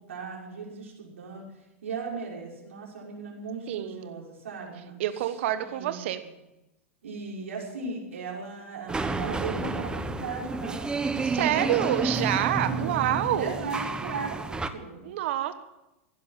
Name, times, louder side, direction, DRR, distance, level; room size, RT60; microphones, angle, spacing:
voice 1, 0.1-1.4 1.8-5.3 5.6-6.3 7.0-10.8 11.1-12.0 12.6-15.0, right 4 dB, 80° right, -2 dB, 5.9 m, -37 dB
voice 2, 3.7-4.2 5.0-6.2 11.2-13.6 15.0-15.5, right 12 dB, 65° right, 11 dB, 1.2 m, -27 dB
sound 1, 8.9-14.7, right 3 dB, 10° right, 1.2 m, -30 dB
16.0 x 11.0 x 7.5 m, 0.93 s
hypercardioid pair, 100°, 7 cm